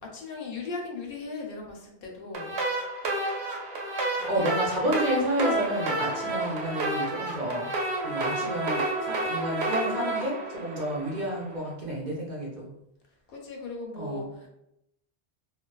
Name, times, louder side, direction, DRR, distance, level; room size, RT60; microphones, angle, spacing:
voice 1, 0.0-2.6 4.2-4.5 13.3-14.5, left 3 dB, 65° left, 0 dB, 0.7 m, -38 dB
sound 1, 2.3-11.4, right 2 dB, 85° right, 0.9 m, -30 dB
voice 2, 4.3-7.7 8.0-12.7 13.9-14.3, right 1 dB, 50° right, -4 dB, 0.6 m, -30 dB
2.5 x 2.3 x 2.2 m, 0.85 s
omnidirectional pair, 1.1 m